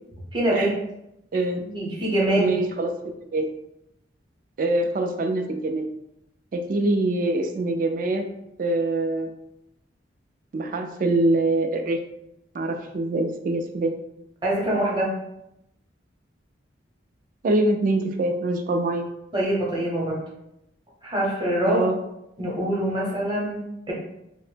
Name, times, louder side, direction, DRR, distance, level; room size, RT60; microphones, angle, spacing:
voice 1, 0.3-0.8 1.6-2.6 14.4-15.2 19.3-20.2 21.0-21.9 22.4-23.9, right 1 dB, 25° right, -4 dB, 0.7 m, -24 dB
voice 2, 1.3-1.6 2.4-3.5 4.6-5.9 6.5-8.3 8.6-9.3 10.5-12.0 12.5-13.9 17.4-19.1 21.7-22.0, right 2 dB, 45° right, 5 dB, 0.3 m, -24 dB
2.7 x 2.0 x 3.2 m, 0.84 s
head